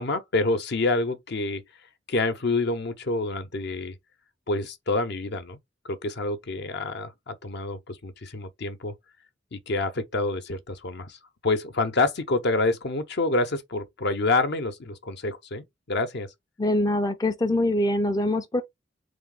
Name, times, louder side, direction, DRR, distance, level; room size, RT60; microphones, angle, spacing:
voice 1, 0.0-1.6 2.1-4.0 4.5-5.6 5.8-8.9 9.5-11.2 11.4-16.3, left 2 dB, 60° left, 0.8 m, -27 dB
voice 2, 16.6-18.6, left 1 dB, 20° left, 0.4 m, -24 dB
4.1 x 3.4 x 3.7 m
head